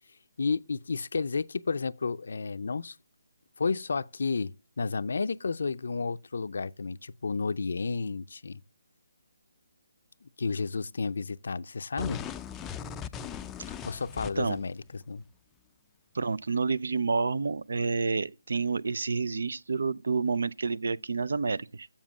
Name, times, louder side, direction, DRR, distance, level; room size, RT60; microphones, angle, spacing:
voice 1, 0.4-2.9 3.6-4.5 4.8-8.6 10.2-12.2 13.8-15.2, left 4 dB, 65° left, 0.5 m, -31 dB
sound 1, 12.0-14.6, left 8 dB, 10° left, 0.4 m, -39 dB
voice 2, 16.1-21.9, right 4 dB, 70° right, 0.5 m, -29 dB
7.3 x 7.2 x 7.4 m
figure-of-eight pair, 155°, 0 cm